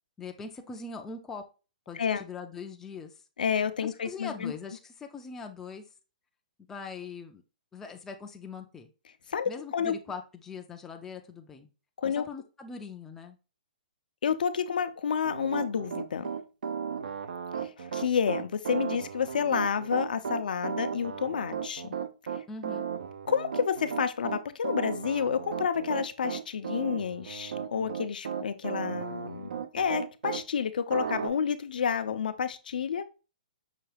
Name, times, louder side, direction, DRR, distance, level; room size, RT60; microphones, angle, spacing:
voice 1, 0.2-1.4 1.9-3.2 3.8-5.9 6.7-7.4 7.7-8.9 9.5-11.7 12.1-13.4 22.5-22.9, left 5 dB, 10° left, 0.3 m, -41 dB
voice 2, 3.4-4.5 9.3-9.9 12.0-12.2 14.2-16.3 17.6-22.0 23.3-33.1, left 7 dB, 80° left, 0.5 m, -30 dB
Piano, 15.2-30.4 30.9-31.3, right 7 dB, 80° right, 0.5 m, -35 dB
5.6 x 2.3 x 3.2 m
hypercardioid pair, 160°, 5 cm